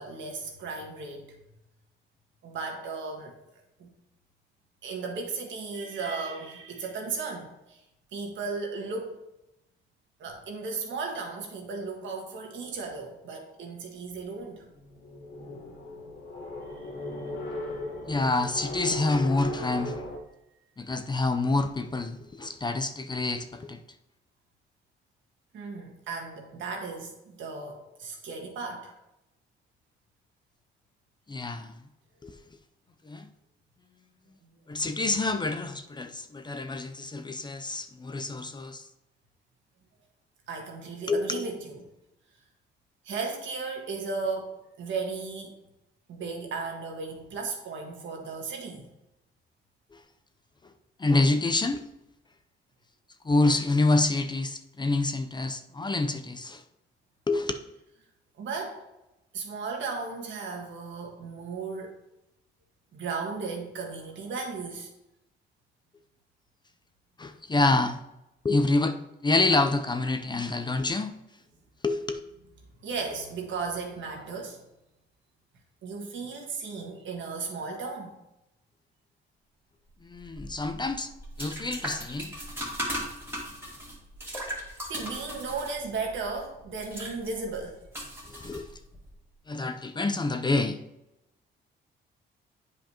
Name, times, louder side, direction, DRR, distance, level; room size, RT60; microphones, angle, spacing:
voice 1, 0.0-1.4 2.4-3.3 3.8-3.9 4.8-7.8 8.1-9.2 10.2-14.6 16.6-17.8 25.5-28.9 40.5-41.8 43.0-45.5 46.1-48.8 58.4-58.8 59.3-62.0 62.9-64.9 72.8-74.6 75.8-78.1 84.9-87.8, right 4 dB, 70° right, 2 dB, 1.6 m, -35 dB
sound 1, 14.6-20.2, left 2 dB, 75° left, 1.4 m, -37 dB
voice 2, 18.1-19.9 20.8-23.8 31.3-31.8 32.2-32.3 33.0-33.3 34.7-38.8 41.1-41.4 51.0-51.8 53.2-56.6 57.3-57.5 67.2-68.0 68.4-69.0 69.2-71.1 71.8-72.2 80.0-81.1 81.4-82.3 88.3-88.7 89.5-90.8, left 2 dB, 20° left, 7 dB, 0.5 m, -27 dB
sound 2, 80.2-89.1, equal, 10° right, 2.1 m, -38 dB
8.9 x 5.1 x 2.9 m, 0.90 s
cardioid pair, 90°, 20 cm